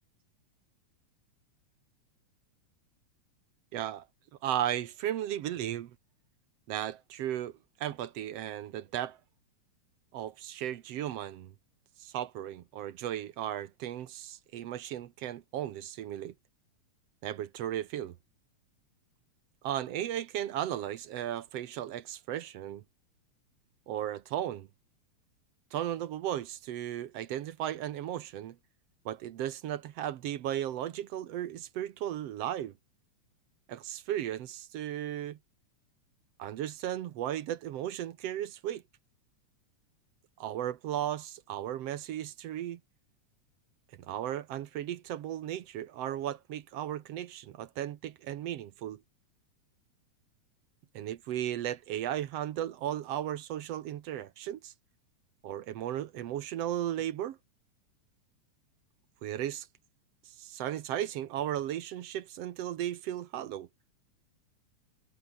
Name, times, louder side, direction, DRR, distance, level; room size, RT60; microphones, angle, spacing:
voice 1, 3.7-4.1 4.4-6.0 6.7-9.2 10.1-11.5 12.0-16.3 17.2-18.2 19.6-22.8 23.9-24.7 25.7-28.6 29.1-32.7 33.7-35.4 36.4-38.8 40.4-42.8 43.9-49.0 50.9-54.7 55.4-57.4 59.2-59.7 60.3-63.7, right 11 dB, 65° right, 1.9 m, -35 dB
omnidirectional pair, 3.3 m